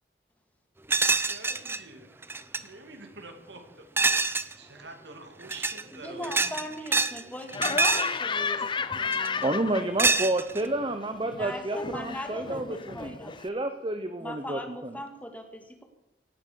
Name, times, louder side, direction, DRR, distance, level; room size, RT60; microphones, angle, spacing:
sound 1, 0.9-1.8 2.2-2.6 4.0-4.5 5.4-5.8 6.2-7.2 7.5-8.1 9.1-9.4 10.0-10.7, right 3 dB, 15° right, 0.6 m, -25 dB
voice 1, 1.2-2.3 2.6-3.9 4.6-6.5 8.5-8.7, right 3 dB, 80° right, 5 dB, 2.7 m, -46 dB
voice 2, 5.9-9.5 11.3-13.6 14.2-15.8, equal, 10° left, 4 dB, 2.2 m, -40 dB
Laughter, 7.5-10.3 10.6-13.5, left 5 dB, 25° left, 0.6 m, -33 dB
voice 3, 9.4-13.1 13.4-14.9, right 1 dB, 30° right, 8 dB, 1.0 m, -30 dB
18.0 x 9.5 x 7.0 m, 0.93 s
head